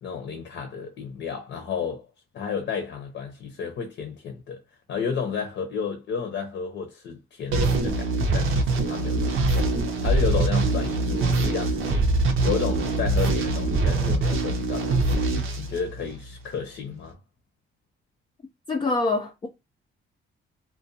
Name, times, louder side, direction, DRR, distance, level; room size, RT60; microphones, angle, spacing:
voice 1, 0.0-2.1 2.3-4.6 4.9-9.7 10.0-12.1 12.4-15.3 15.6-17.2, left 6 dB, 65° left, 0.7 m, -32 dB
sound 1, 7.5-16.4, right 2 dB, 80° right, 0.6 m, -23 dB
voice 2, 18.7-19.5, left 3 dB, 25° left, 0.4 m, -25 dB
2.4 x 2.2 x 2.6 m
cardioid pair, 105°, 21 cm